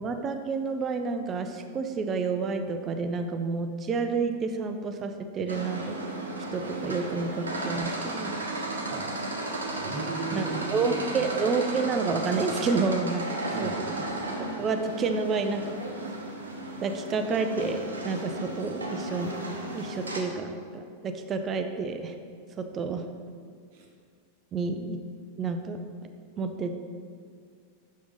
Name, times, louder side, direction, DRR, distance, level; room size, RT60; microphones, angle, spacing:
voice 1, 0.0-6.0 6.5-8.5 10.3-13.8 14.6-15.8 16.8-19.3 19.7-22.1 22.6-23.1 24.5-25.0 25.4-25.8 26.4-26.7, right 4 dB, 25° right, 7 dB, 0.5 m, -29 dB
sound 1, 5.5-20.2, right 2 dB, 75° right, 0.8 m, -34 dB
voice 2, 9.7-11.2 13.5-14.2 23.7-23.9, right 4 dB, 50° right, 1 dB, 1.1 m, -37 dB
6.2 x 5.8 x 4.0 m, 2.2 s
figure-of-eight pair, 90°, 0 cm